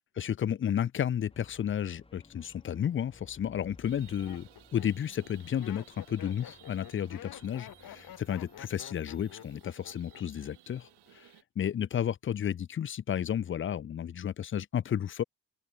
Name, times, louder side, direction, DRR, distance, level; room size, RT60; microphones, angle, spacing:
voice 1, 0.2-10.9 11.1-15.2, left 9 dB, 30° left, 0.5 m, -32 dB
sound 1, 1.3-8.8, left 2 dB, 15° left, 1.1 m, -59 dB
Laughter, 3.1-3.2 3.9-10.5 10.7-11.3, left 12 dB, 55° left, 0.8 m, -49 dB
sound 2, 3.8-11.4, right 16 dB, 80° right, 2.4 m, -58 dB
open air
hypercardioid pair, 45°, 40 cm